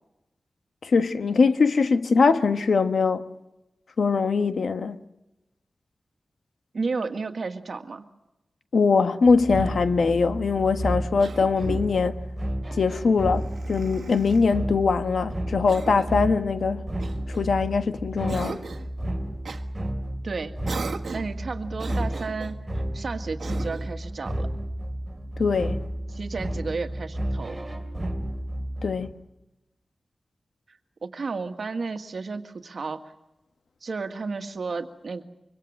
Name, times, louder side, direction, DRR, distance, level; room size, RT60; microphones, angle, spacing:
voice 1, 0.8-3.3 4.0-5.0 8.7-12.2 12.7-16.8 17.3-18.6 25.4-25.8 28.8-29.1, left 4 dB, 80° left, 1.2 m, -22 dB
voice 2, 6.7-8.0 20.2-20.5 21.1-24.5 26.1-27.6 30.7-33.0 33.8-35.2, right 4 dB, 60° right, 1.8 m, -32 dB
sound 1, 9.3-29.1, right 1 dB, 15° right, 3.2 m, -32 dB
Cough, 11.2-11.9 13.3-14.5 15.7-16.2 17.0-17.8 18.3-18.9 19.4-19.6 20.6-21.4 21.8-22.6 23.4-24.0, right 4 dB, 80° right, 1.5 m, -38 dB
25.0 x 24.0 x 6.5 m
wide cardioid pair, 125°, 0 cm